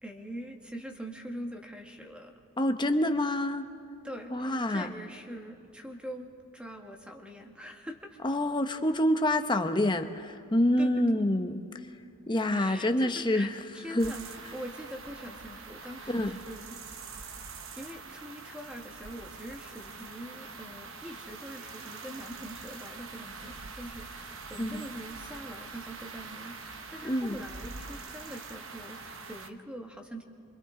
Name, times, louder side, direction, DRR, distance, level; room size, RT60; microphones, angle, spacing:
voice 1, 0.0-2.3 4.0-8.2 10.8-10.9 12.5-13.5 13.7-16.8 17.8-30.2, equal, 5° right, 2 dB, 1.4 m, -43 dB
voice 2, 2.6-3.7 4.3-4.9 8.2-11.6 12.3-13.5 13.9-14.1 16.1-16.4 24.6-24.8 27.0-27.4, left 1 dB, 20° left, 7 dB, 0.8 m, -27 dB
sound 1, 14.0-29.5, right 4 dB, 60° right, 0.9 m, -44 dB
28.5 x 25.0 x 3.7 m, 2.6 s
head